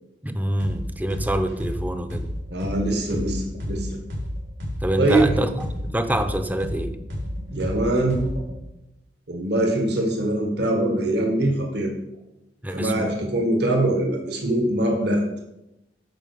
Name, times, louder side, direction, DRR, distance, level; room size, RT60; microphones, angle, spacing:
voice 1, 0.2-2.3 4.8-5.7 5.9-7.0 12.6-13.1, right 1 dB, 10° right, 9 dB, 0.7 m, -26 dB
sound 1, 0.6-0.8 1.1-4.8 5.1-8.5, left 1 dB, 80° right, 3.6 m, -30 dB
voice 2, 2.5-4.0 5.0-5.4 7.5-8.3 9.3-11.9 12.7-15.2, right 1 dB, 65° right, 1 dB, 1.8 m, -23 dB
9.1 x 6.0 x 6.7 m, 0.91 s
head